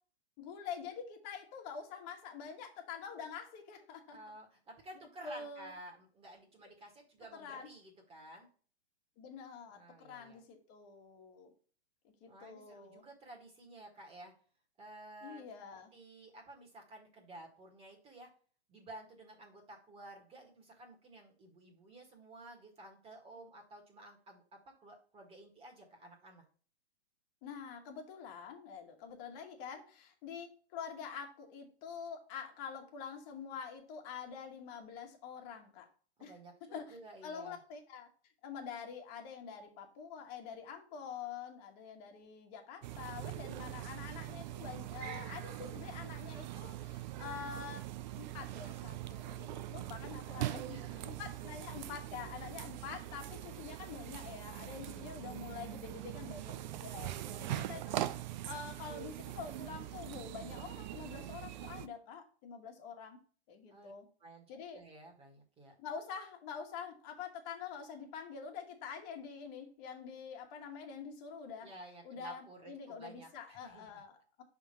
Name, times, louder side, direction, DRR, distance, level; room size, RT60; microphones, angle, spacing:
voice 1, 0.4-4.2 5.2-5.7 7.3-7.7 9.2-11.5 12.0-13.0 15.2-15.9 27.4-35.9 36.2-37.0 37.2-38.1 38.4-47.8 48.2-58.0 58.4-63.2 63.5-64.0 64.5-64.8 65.8-71.7 72.0-74.4, left 6 dB, 40° left, 3 dB, 1.6 m, -46 dB
voice 2, 4.1-8.5 9.7-10.4 12.2-14.3 14.8-15.4 15.7-18.3 18.7-26.4 36.2-37.6 50.7-51.2 54.6-55.1 57.1-57.4 63.7-63.9 64.2-65.7 71.6-73.9, right 1 dB, 20° right, 1 dB, 1.7 m, -53 dB
sound 1, 42.8-61.9, right 14 dB, 45° right, 0.5 m, -42 dB
5.6 x 3.7 x 5.6 m, 0.42 s
hypercardioid pair, 135°, 32 cm